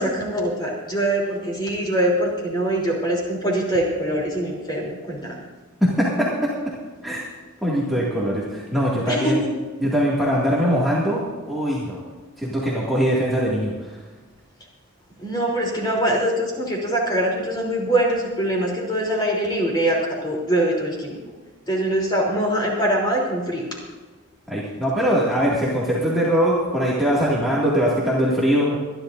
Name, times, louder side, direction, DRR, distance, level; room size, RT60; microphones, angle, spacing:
voice 1, 0.0-5.4 9.1-9.3 15.2-21.2 21.7-23.7, right 1 dB, 20° left, -3 dB, 3.4 m, -23 dB
voice 2, 5.8-6.3 7.0-7.2 7.6-9.4 9.8-12.0 12.4-13.7 24.5-28.8, equal, ahead, -7 dB, 2.2 m, -21 dB
25.5 x 11.5 x 2.6 m, 1.3 s
head